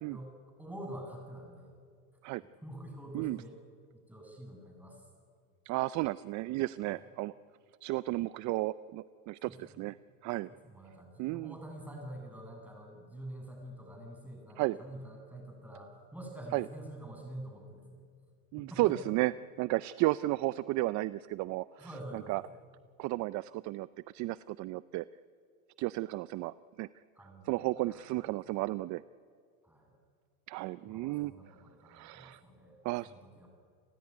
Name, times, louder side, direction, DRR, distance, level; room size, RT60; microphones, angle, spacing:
voice 1, 0.1-1.7 2.6-3.6 3.9-5.1 6.9-7.0 9.4-9.9 10.5-18.0 18.6-19.1 21.8-22.5 27.1-28.2 29.6-29.9 30.8-32.8 33.1-33.5, right 1 dB, 5° right, 1 dB, 7.9 m, -47 dB
voice 2, 5.7-7.3 7.8-10.0 10.2-10.5 11.2-11.5 14.6-14.8 16.5-16.6 18.5-19.3 19.6-21.9 22.3-22.4 23.0-23.9 24.1-25.1 25.8-26.9 27.5-29.0 30.5-31.3 31.9-32.4 32.8-33.1, right 19 dB, 45° right, 17 dB, 0.6 m, -33 dB
30.0 x 17.5 x 9.8 m, 2.1 s
supercardioid pair, 115°, 41 cm